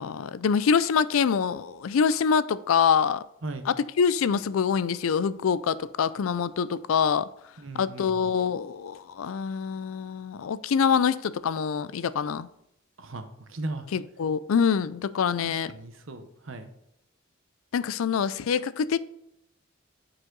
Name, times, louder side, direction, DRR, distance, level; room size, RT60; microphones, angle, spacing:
voice 1, 0.0-3.2 3.7-7.3 7.8-12.5 13.9-15.7 17.7-19.0, left 6 dB, 85° left, 0.4 m, -25 dB
voice 2, 7.6-8.4 13.0-13.9 15.4-16.7, right 2 dB, 70° right, 0.9 m, -38 dB
8.8 x 4.9 x 3.8 m
head